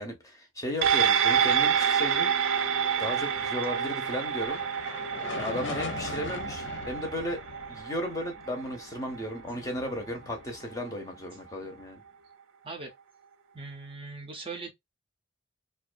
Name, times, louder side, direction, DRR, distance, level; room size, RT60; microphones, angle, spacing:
voice 1, 0.0-2.3 3.0-4.6 5.4-7.4 7.7-12.0, left 1 dB, 15° left, 0.6 m, -35 dB
sound 1, 0.8-9.5 9.9-10.0, right 8 dB, 80° right, 0.4 m, -28 dB
sound 2, 1.3-8.3, right 1 dB, 90° left, 0.9 m, -50 dB
sound 3, 3.3-11.8, left 4 dB, 65° left, 0.6 m, -42 dB
voice 2, 5.4-5.7 12.6-12.9 13.5-14.7, right 3 dB, 25° right, 0.5 m, -40 dB
2.4 x 2.2 x 2.4 m
head